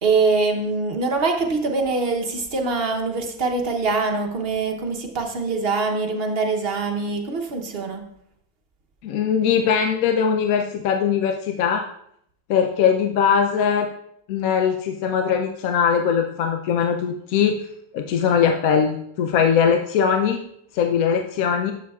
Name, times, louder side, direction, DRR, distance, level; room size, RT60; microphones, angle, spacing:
voice 1, 0.0-8.1, right 4 dB, 45° right, 4 dB, 1.0 m, -23 dB
voice 2, 9.0-11.8 12.5-13.9 14.3-17.6 17.9-20.4 20.7-21.7, left 7 dB, 75° left, 4 dB, 1.0 m, -20 dB
12.0 x 7.0 x 2.3 m, 0.72 s
omnidirectional pair, 1.5 m